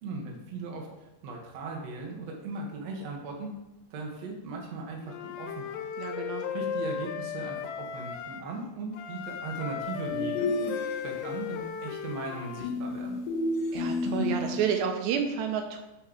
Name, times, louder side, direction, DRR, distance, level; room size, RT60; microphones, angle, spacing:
voice 1, 0.0-3.5 3.9-5.8 6.5-10.7 11.0-13.2, right 3 dB, 60° right, 0 dB, 1.7 m, -38 dB
Wind instrument woodwind instrument, 5.1-8.4 8.9-12.7, left 8 dB, 85° left, 2.7 m, -36 dB
voice 2, 6.0-6.5 13.7-15.8, right 7 dB, 80° right, 4 dB, 2.8 m, -30 dB
sound 1, 10.1-11.4 12.6-14.8, left 2 dB, 65° left, 3.3 m, -31 dB
6.7 x 6.6 x 4.9 m, 0.93 s
omnidirectional pair, 5.1 m